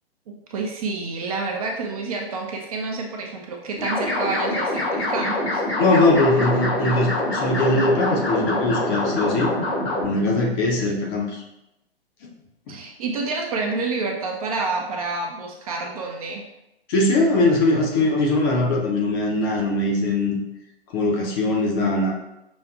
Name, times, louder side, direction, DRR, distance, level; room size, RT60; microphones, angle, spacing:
voice 1, 0.3-5.6 12.7-16.4, right 3 dB, 35° right, 1 dB, 0.5 m, -28 dB
sound 1, 3.8-10.1, left 1 dB, 80° left, 1.5 m, -25 dB
voice 2, 5.8-9.5 10.0-11.4 12.2-12.3 16.9-20.4 20.9-22.1, left 2 dB, 25° left, -1 dB, 0.6 m, -21 dB
5.9 x 2.5 x 2.4 m, 0.86 s
figure-of-eight pair, 115°, 31 cm